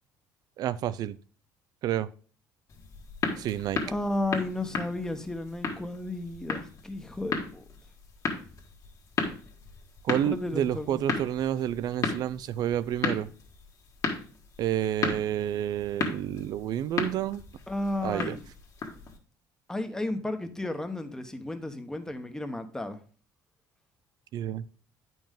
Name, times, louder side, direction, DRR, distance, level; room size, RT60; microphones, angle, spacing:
voice 1, 0.6-1.2 1.8-2.1 3.4-3.8 10.0-13.3 14.6-17.4 18.0-18.4 24.3-24.6, right 11 dB, 60° right, 0.4 m, -29 dB
sound 1, 2.7-19.2, left 4 dB, 45° left, 1.5 m, -35 dB
voice 2, 3.9-7.6 10.3-11.0 17.7-18.5 19.7-23.0, left 2 dB, 10° left, 0.9 m, -33 dB
8.7 x 5.5 x 3.6 m
cardioid pair, 110°, 8 cm